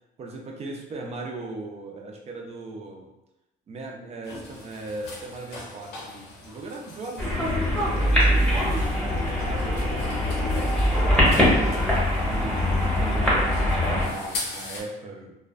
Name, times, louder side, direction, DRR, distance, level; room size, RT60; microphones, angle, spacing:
voice 1, 0.2-3.1 3.7-11.9 12.3-15.3, right 3 dB, 40° right, 1 dB, 0.5 m, -38 dB
sound 1, 4.2-14.8, left 3 dB, 80° left, 0.6 m, -41 dB
sound 2, 7.2-14.1, left 1 dB, 5° left, 0.9 m, -22 dB
sound 3, 7.7-14.3, equal, 25° left, 0.5 m, -37 dB
2.4 x 2.1 x 2.4 m, 0.94 s
cardioid pair, 110°, 17 cm